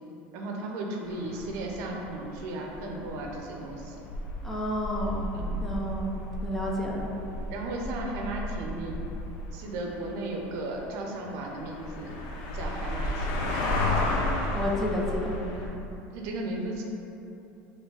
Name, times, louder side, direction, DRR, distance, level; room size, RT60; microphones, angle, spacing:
voice 1, 0.3-4.0 5.3-5.6 7.5-9.0 9.5-12.2 12.5-13.7 16.1-16.8, right 2 dB, 65° right, 1 dB, 0.6 m, -35 dB
sound 1, 1.1-15.7, left 1 dB, 65° left, 0.6 m, -33 dB
voice 2, 4.4-5.3 5.6-7.1 14.5-15.3, equal, 5° left, -3 dB, 0.5 m, -31 dB
3.8 x 3.2 x 3.8 m, 2.9 s
supercardioid pair, 130°, 5 cm